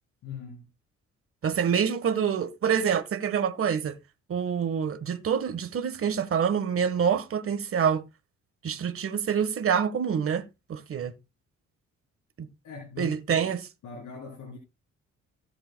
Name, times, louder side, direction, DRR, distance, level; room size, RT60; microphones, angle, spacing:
voice 1, 0.2-0.7 12.6-13.5 13.8-14.6, left 6 dB, 75° left, 3.2 m, -41 dB
voice 2, 1.4-4.0 4.3-8.0 8.6-11.1 12.4-12.5 13.0-13.6, right 7 dB, 45° right, 1.3 m, -26 dB
16.5 x 7.9 x 2.2 m
cardioid pair, 90°, 30 cm